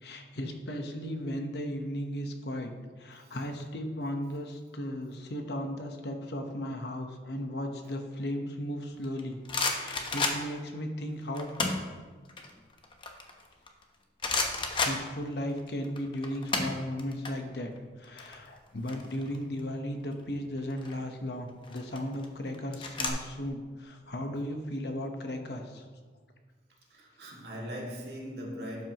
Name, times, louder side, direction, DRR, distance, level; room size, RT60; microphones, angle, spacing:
voice 1, 0.0-2.7 3.0-11.5 14.8-17.7 18.0-25.9, equal, 70° left, 5 dB, 1.0 m, -36 dB
voice 2, 3.2-3.5 7.8-7.9 26.9-28.9, equal, 65° right, -3 dB, 2.2 m, -40 dB
sound 1, 9.0-10.7 11.3-11.9 12.3-13.8 14.2-15.6 15.8-17.3 17.6-17.8 18.0-19.6 20.6-21.0 21.6-23.1, left 3 dB, 30° left, 0.8 m, -32 dB
12.0 x 7.7 x 2.9 m, 1.4 s
head